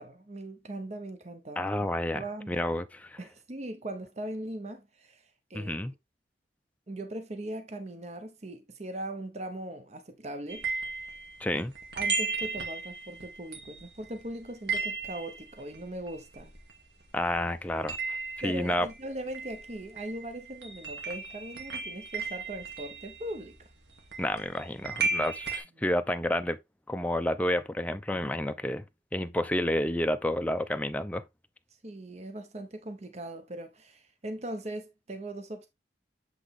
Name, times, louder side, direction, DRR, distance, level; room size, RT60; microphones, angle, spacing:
voice 1, 0.0-2.5 3.2-5.8 6.9-10.7 11.5-11.6 11.9-16.5 18.4-23.6 25.8-25.9 31.8-35.7, right 1 dB, 40° right, 0.8 m, -40 dB
voice 2, 1.6-3.2 5.5-5.9 11.4-11.7 17.1-18.0 18.4-18.9 24.2-26.6 26.9-28.8 29.1-31.2, left 1 dB, 10° left, 0.5 m, -30 dB
sound 1, 10.5-17.1 17.4-25.6, right 4 dB, 80° right, 2.0 m, -36 dB
8.0 x 3.6 x 3.6 m
head